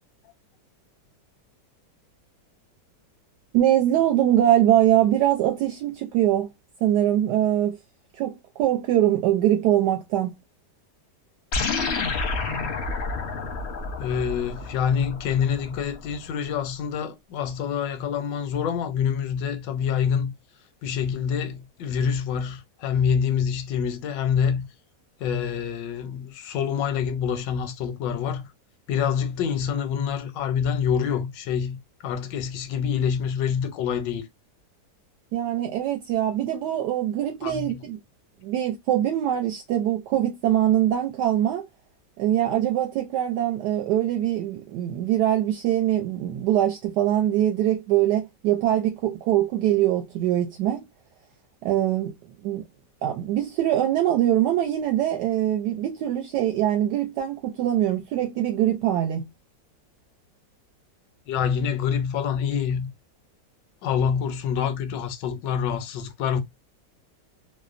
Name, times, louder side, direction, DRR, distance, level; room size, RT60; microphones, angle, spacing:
voice 1, 3.5-6.5 6.8-7.8 8.2-10.4 35.3-38.0 38.4-41.7 42.2-50.8 51.6-52.1 52.4-52.6 53.0-59.3, right 12 dB, 75° right, 1.1 m, -23 dB
sound 1, 11.5-16.2, left 4 dB, 60° left, 0.7 m, -30 dB
voice 2, 14.0-20.3 20.8-24.7 25.2-28.5 28.9-34.2 37.4-37.7 61.3-62.9 63.8-66.4, left 7 dB, 85° left, 1.3 m, -26 dB
3.1 x 2.0 x 2.4 m
omnidirectional pair, 1.9 m